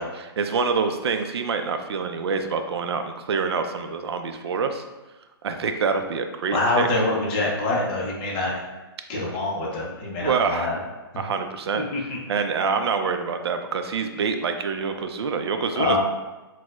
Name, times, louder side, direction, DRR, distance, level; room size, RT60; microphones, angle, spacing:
voice 1, 0.0-4.8 5.4-6.9 10.2-10.7 11.2-11.8 12.3-16.0, right 5 dB, 85° right, 7 dB, 0.4 m, -26 dB
voice 2, 6.5-8.5 9.1-10.8 11.8-12.2 15.7-16.0, left 2 dB, 20° left, -4 dB, 0.4 m, -25 dB
4.2 x 2.0 x 2.3 m, 1.1 s
hypercardioid pair, 170°, 13 cm